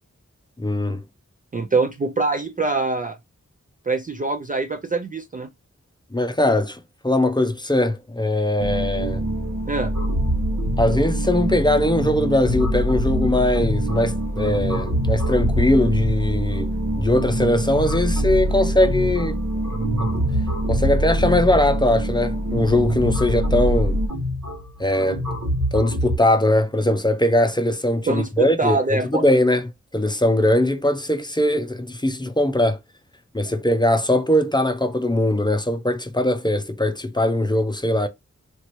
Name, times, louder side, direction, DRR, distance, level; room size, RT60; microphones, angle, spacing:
voice 1, 0.6-1.0 6.1-9.2 10.8-16.7 17.0-19.4 20.7-24.0 24.8-25.2 25.7-32.8 33.3-38.1, left 1 dB, 15° left, 0.6 m, -20 dB
voice 2, 1.5-3.2 3.9-5.5 9.7-9.9 28.1-29.2, right 3 dB, 25° right, 0.4 m, -24 dB
sound 1, 8.6-24.1, right 1 dB, 65° right, 1.0 m, -25 dB
sound 2, 9.9-26.2, equal, 85° right, 1.7 m, -28 dB
3.1 x 2.8 x 3.0 m
cardioid pair, 45°, 31 cm